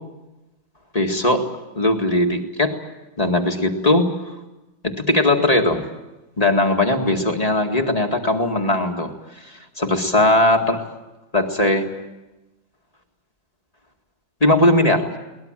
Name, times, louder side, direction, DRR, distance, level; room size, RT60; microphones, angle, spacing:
voice 1, 0.9-1.5 1.7-2.8 3.2-4.4 4.9-5.9 6.4-10.9 11.3-11.9 14.4-15.1, left 1 dB, 20° left, 3 dB, 1.9 m, -19 dB
22.5 x 19.5 x 9.0 m, 1.0 s
omnidirectional pair, 2.1 m